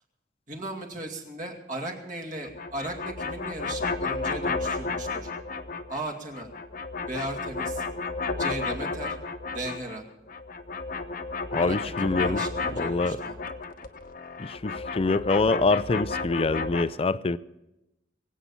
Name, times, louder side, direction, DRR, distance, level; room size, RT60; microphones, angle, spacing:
voice 1, 0.5-5.3 5.9-6.5 7.1-7.8 8.4-9.2 9.5-10.0 11.6-13.4, right 1 dB, 45° right, 2.5 m, -36 dB
sound 1, 2.4-6.0 6.3-10.0 10.3-16.8, left 4 dB, 55° left, 1.0 m, -32 dB
voice 2, 11.5-12.4 12.8-13.2 14.4-17.4, left 3 dB, 35° left, 0.4 m, -25 dB
23.5 x 8.4 x 5.6 m
head